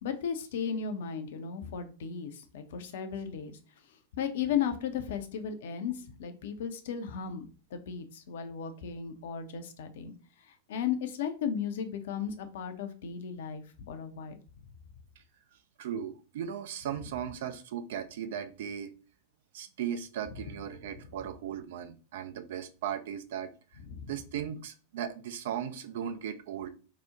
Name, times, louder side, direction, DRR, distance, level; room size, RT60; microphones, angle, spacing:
voice 1, 0.0-3.6 4.1-7.5 7.7-10.1 10.5-14.4 20.4-20.6 23.8-24.1, left 7 dB, 55° left, 7 dB, 0.5 m, -35 dB
voice 2, 15.8-18.9 19.5-23.5 24.1-26.7, right 9 dB, 55° right, 9 dB, 0.4 m, -37 dB
2.9 x 2.0 x 3.6 m, 0.36 s
figure-of-eight pair, 90°, 0 cm